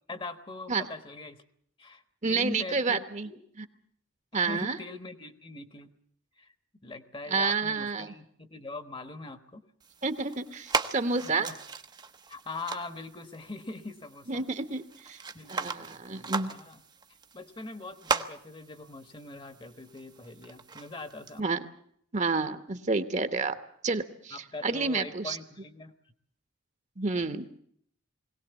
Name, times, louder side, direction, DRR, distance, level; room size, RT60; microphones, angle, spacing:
voice 1, 0.1-1.4 1.8-2.0 2.3-3.0 3.2-3.4 4.5-5.9 6.4-6.5 6.8-9.6 11.2-11.6 12.3-14.4 15.3-16.8 17.3-21.4 24.3-25.9 27.1-27.3, left 3 dB, 25° left, 10 dB, 1.3 m, -42 dB
voice 2, 2.2-3.3 3.6-3.7 4.3-4.8 7.3-8.1 10.0-11.5 14.3-15.2 15.5-16.5 21.4-21.7 22.1-23.5 23.8-25.4 27.0-27.5, right 4 dB, 35° right, 9 dB, 1.2 m, -29 dB
sound 1, 9.8-21.4, right 4 dB, 20° right, 0.8 m, -38 dB
21.5 x 18.0 x 8.2 m, 0.65 s
head